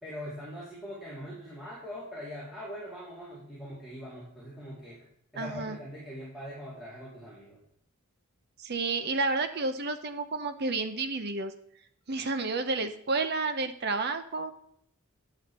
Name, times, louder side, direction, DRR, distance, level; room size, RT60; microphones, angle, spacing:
voice 1, 0.0-5.0 5.3-7.6, equal, ahead, -8 dB, 2.1 m, -42 dB
voice 2, 5.3-5.8 8.6-11.5 12.1-14.5, right 3 dB, 50° right, 9 dB, 0.8 m, -30 dB
9.4 x 7.1 x 4.4 m, 0.69 s
head